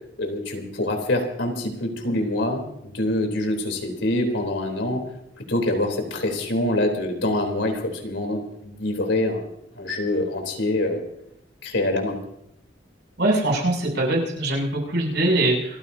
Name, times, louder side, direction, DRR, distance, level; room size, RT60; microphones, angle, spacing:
voice 1, 0.2-5.0 5.4-9.4 9.7-11.0 11.6-12.2, left 1 dB, 75° left, 3 dB, 3.7 m, -25 dB
voice 2, 13.2-15.8, right 2 dB, 65° right, -2 dB, 7.8 m, -22 dB
29.0 x 15.0 x 2.8 m, 0.76 s
head